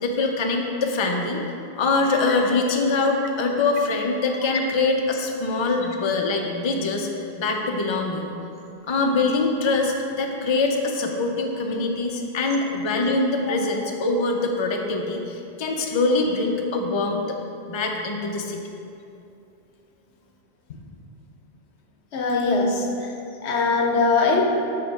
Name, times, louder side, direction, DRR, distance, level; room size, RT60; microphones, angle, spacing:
voice 1, 0.0-1.4 1.8-7.1 7.4-8.3 8.9-17.2 17.7-18.6, left 3 dB, 35° left, 2 dB, 0.5 m, -23 dB
voice 2, 22.1-23.1 23.4-24.4, left 3 dB, 85° left, 1 dB, 1.1 m, -21 dB
7.9 x 3.8 x 5.4 m, 2.7 s
omnidirectional pair, 1.1 m